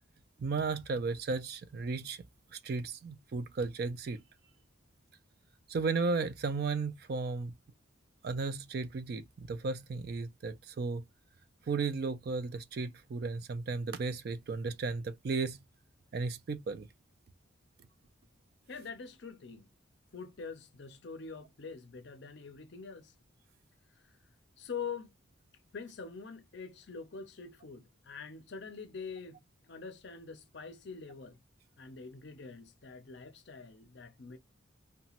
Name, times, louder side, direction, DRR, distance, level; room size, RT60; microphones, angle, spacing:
voice 1, 0.4-2.2 2.5-4.2 5.7-7.5 8.2-11.0 11.7-15.6 16.1-16.9, right 4 dB, 50° right, 0.3 m, -34 dB
voice 2, 18.7-19.7 20.1-23.1 24.6-25.1 25.7-29.4 29.7-31.4 31.8-34.4, left 5 dB, 55° left, 0.5 m, -44 dB
2.9 x 2.2 x 2.8 m
head